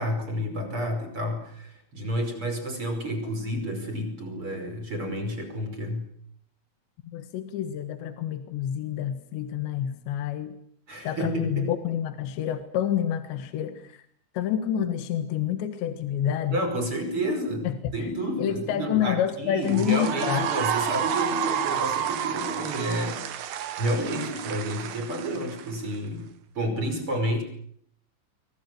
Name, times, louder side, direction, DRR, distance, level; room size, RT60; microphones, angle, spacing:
voice 1, 0.0-6.0 10.9-11.7 16.5-26.3 26.5-27.4, equal, 25° right, 6 dB, 5.8 m, -30 dB
voice 2, 7.0-10.5 11.0-14.0 14.3-16.6 17.6-18.1 18.4-20.5, left 10 dB, 65° left, 9 dB, 3.4 m, -28 dB
sound 1, 19.6-26.0, right 10 dB, 65° right, 2.8 m, -30 dB
26.0 x 24.0 x 7.9 m, 0.67 s
omnidirectional pair, 5.9 m